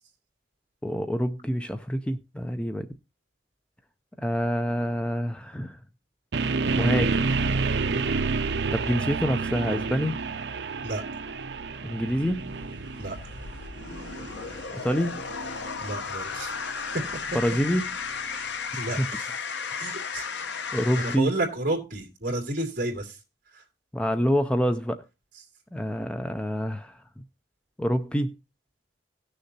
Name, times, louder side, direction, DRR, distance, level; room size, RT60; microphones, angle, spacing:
voice 1, 0.8-2.9 4.2-5.8 6.7-7.2 8.7-10.2 11.8-12.5 14.8-15.2 17.3-18.0 19.0-19.2 20.7-21.3 23.9-25.0 25.7-27.0 27.8-28.3, equal, 5° left, 0.5 m, -26 dB
sound 1, 6.3-18.3, right 4 dB, 65° right, 0.6 m, -30 dB
sound 2, 7.2-8.0 12.0-21.2, left 5 dB, 75° left, 0.8 m, -35 dB
voice 2, 7.8-8.1 10.8-11.0 13.0-13.2 15.8-16.5 18.3-18.5 18.7-19.3 19.8-20.3 21.0-23.2 23.5-23.6, right 2 dB, 50° right, 2.7 m, -31 dB
17.5 x 6.6 x 2.7 m
head